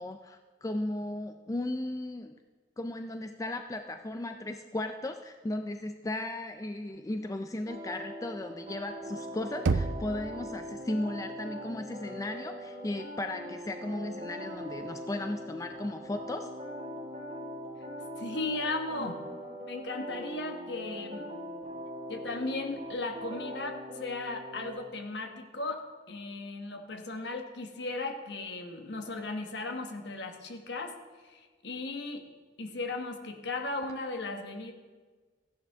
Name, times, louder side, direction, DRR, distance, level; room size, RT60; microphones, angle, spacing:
voice 1, 0.0-2.4 2.8-16.5, left 1 dB, 20° left, 6 dB, 0.4 m, -36 dB
sound 1, 7.7-24.7, equal, 40° right, 4.1 m, -41 dB
Knock, 9.7-10.6, right 3 dB, 80° right, 0.5 m, -29 dB
voice 2, 18.2-19.2 19.7-21.3 22.1-31.0 31.2-32.3 32.6-34.7, left 2 dB, 60° left, 5 dB, 1.2 m, -36 dB
15.0 x 11.0 x 3.5 m, 1.4 s
head